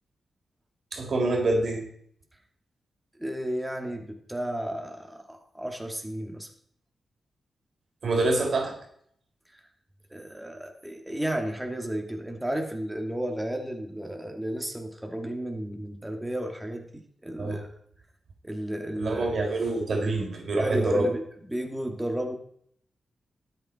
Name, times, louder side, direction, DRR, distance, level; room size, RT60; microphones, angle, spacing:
voice 1, 0.9-1.8 8.0-8.8 17.4-17.6 19.0-21.1, right 2 dB, 65° right, 2 dB, 3.9 m, -26 dB
voice 2, 3.2-6.5 10.1-17.7 18.4-19.4 20.6-21.2 21.5-22.4, right 1 dB, 10° right, 2 dB, 2.5 m, -33 dB
13.0 x 8.2 x 4.4 m, 0.65 s
cardioid pair, 50°, 0 cm